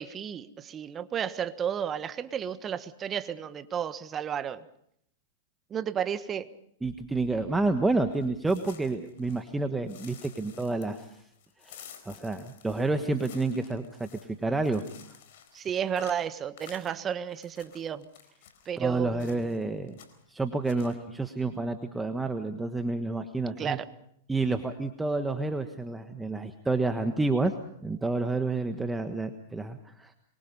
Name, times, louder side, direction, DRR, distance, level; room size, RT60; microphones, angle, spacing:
voice 1, 0.0-4.6 5.7-6.5 15.5-18.1 18.6-19.4 23.6-23.8, right 8 dB, 25° right, 13 dB, 1.3 m, -32 dB
voice 2, 6.8-11.2 11.6-14.8 18.8-20.0 20.3-23.8 24.3-27.5 27.8-30.1, right 3 dB, 10° right, 7 dB, 1.4 m, -29 dB
sound 1, 8.1-9.5 9.9-18.7 19.2-19.6 19.9-20.3 20.6-20.9, left 9 dB, 60° left, 4.3 m, -52 dB
25.0 x 23.0 x 5.5 m, 0.70 s
hypercardioid pair, 110°, 0 cm